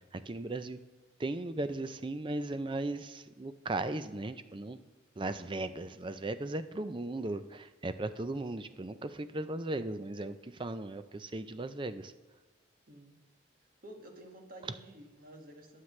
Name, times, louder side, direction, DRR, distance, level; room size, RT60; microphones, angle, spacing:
voice 1, 0.3-0.8 1.2-4.8 5.2-12.1, right 2 dB, 25° right, 11 dB, 0.5 m, -37 dB
voice 2, 13.8-15.8, right 1 dB, 50° right, 2 dB, 1.8 m, -51 dB
21.0 x 7.5 x 3.2 m, 1.3 s
head